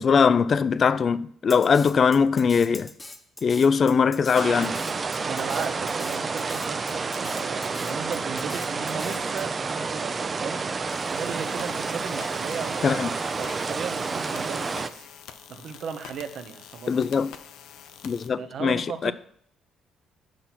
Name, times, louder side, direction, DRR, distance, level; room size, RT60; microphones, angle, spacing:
voice 1, 0.0-2.9 3.4-4.8 12.8-13.1 16.9-17.3 18.0-19.1, left 6 dB, 40° left, 0.3 m, -21 dB
Drum kit, 1.5-9.4, left 2 dB, 15° left, 0.9 m, -42 dB
sound 1, 4.3-14.9, right 4 dB, 30° right, 0.4 m, -29 dB
voice 2, 5.1-10.7 11.1-15.1 15.5-17.1 18.4-19.1, right 7 dB, 60° right, 0.8 m, -36 dB
sound 2, 10.9-18.3, left 8 dB, 85° left, 0.6 m, -46 dB
6.3 x 5.6 x 5.9 m
cardioid pair, 120°, 0 cm